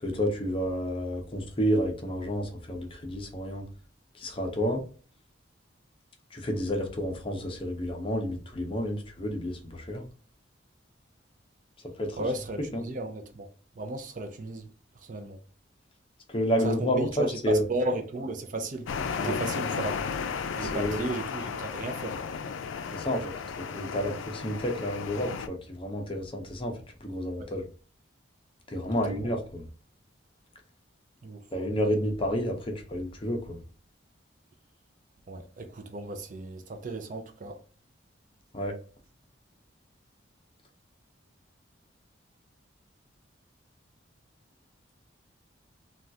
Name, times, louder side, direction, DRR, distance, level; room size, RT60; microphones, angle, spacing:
voice 1, 0.0-3.6 4.1-4.8 6.3-10.0 12.0-12.2 12.7-12.9 16.3-17.6 19.2-19.4 20.6-21.0 22.9-23.3 23.6-27.6 28.7-29.6 31.5-33.6 38.5-38.7, equal, 25° left, 0.6 m, -30 dB
voice 2, 12.2-13.5 13.8-14.7 15.0-15.4 16.6-20.0 20.6-22.2 27.4-27.5 29.0-29.3 31.2-31.4 35.3-37.6, right 2 dB, 40° right, 0.5 m, -34 dB
sound 1, 18.9-25.5, left 6 dB, 85° left, 0.4 m, -34 dB
3.4 x 2.3 x 2.6 m
head